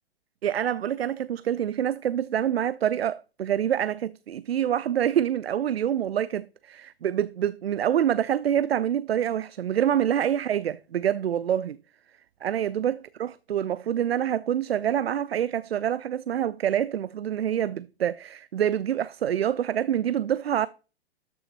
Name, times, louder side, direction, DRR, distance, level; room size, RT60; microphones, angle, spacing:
voice 1, 0.4-11.8 12.4-20.7, right 10 dB, 75° right, 0.5 m, -26 dB
13.0 x 6.3 x 2.9 m
figure-of-eight pair, 110°, 31 cm